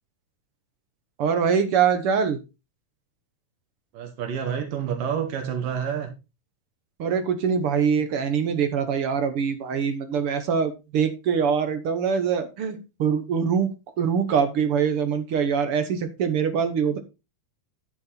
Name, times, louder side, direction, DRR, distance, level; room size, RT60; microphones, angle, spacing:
voice 1, 1.2-2.4 7.0-13.7 14.0-17.0, right 6 dB, 60° right, 9 dB, 1.5 m, -23 dB
voice 2, 3.9-6.1, right 8 dB, 80° right, 5 dB, 3.1 m, -28 dB
10.5 x 6.8 x 4.2 m, 0.28 s
omnidirectional pair, 3.9 m